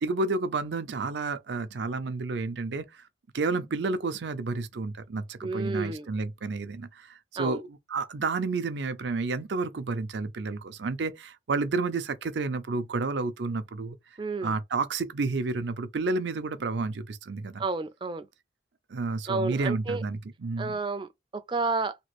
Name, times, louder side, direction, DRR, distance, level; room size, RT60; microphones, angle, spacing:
voice 1, 0.0-3.0 3.3-14.0 14.4-17.6 18.9-20.8, right 3 dB, 85° right, 0.5 m, -30 dB
voice 2, 5.4-6.1 7.4-7.6 14.2-14.5 17.6-18.3 19.3-20.0 20.6-22.0, right 3 dB, 30° right, 0.4 m, -31 dB
3.0 x 2.4 x 3.0 m
head